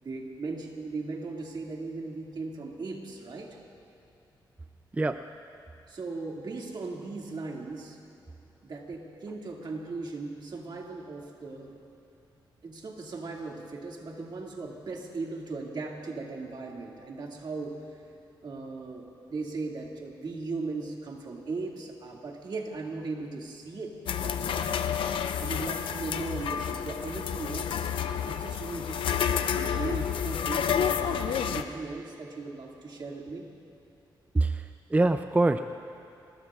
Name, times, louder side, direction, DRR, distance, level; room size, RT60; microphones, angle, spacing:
voice 1, 0.0-3.6 5.9-8.0 8.6-11.8 12.6-17.9 18.4-24.7 25.4-27.9 28.2-33.5, right 3 dB, 60° right, -1 dB, 2.3 m, -38 dB
sound 1, 24.1-31.6, left 8 dB, 85° left, 0.6 m, -30 dB
voice 2, 34.3-35.6, right 2 dB, 15° right, 9 dB, 0.4 m, -24 dB
26.0 x 20.0 x 2.5 m, 2.8 s
cardioid pair, 75°, 8 cm